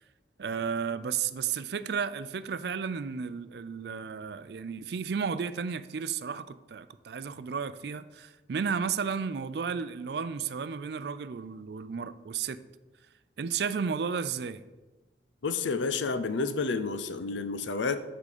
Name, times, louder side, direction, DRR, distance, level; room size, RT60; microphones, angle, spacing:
voice 1, 0.4-12.6 13.4-14.6, right 6 dB, 60° right, 14 dB, 0.4 m, -33 dB
voice 2, 15.4-18.0, left 4 dB, 80° left, 11 dB, 0.6 m, -30 dB
8.3 x 3.8 x 6.6 m, 1.1 s
head